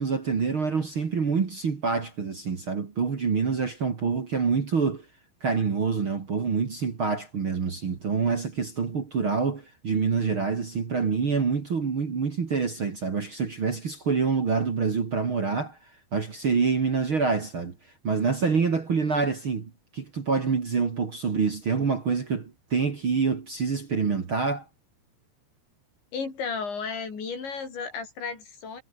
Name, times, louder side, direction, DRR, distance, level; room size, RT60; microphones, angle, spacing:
voice 1, 0.0-5.0 5.4-15.8 16.1-17.8 18.0-24.7, right 5 dB, 40° right, 2.3 m, -26 dB
voice 2, 26.1-28.8, left 5 dB, 85° left, 9.2 m, -33 dB
omnidirectional pair, 5.0 m